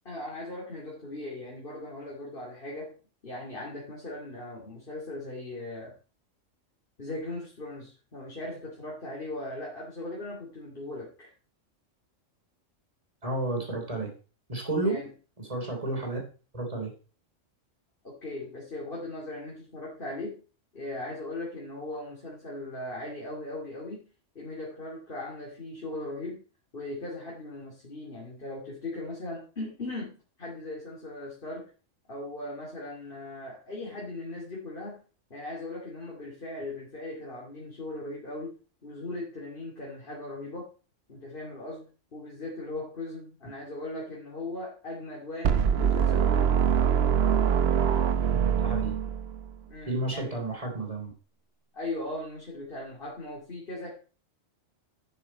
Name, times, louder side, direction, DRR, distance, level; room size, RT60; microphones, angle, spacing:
voice 1, 0.0-3.0 3.2-5.9 7.0-11.3 14.8-15.1 18.0-20.4 20.7-24.1 24.3-26.4 26.7-31.7 32.1-35.0 35.3-40.7 41.1-46.5 49.7-50.4 51.7-54.0, left 2 dB, 45° left, -4 dB, 2.9 m, -38 dB
voice 2, 13.2-14.1 14.5-15.0 15.4-16.2 16.5-16.9 48.3-49.0 49.8-51.1, right 2 dB, 25° right, 1 dB, 3.3 m, -31 dB
sound 1, 45.4-49.5, right 7 dB, 60° right, 0.9 m, -24 dB
10.5 x 7.1 x 4.3 m, 0.36 s
omnidirectional pair, 1.3 m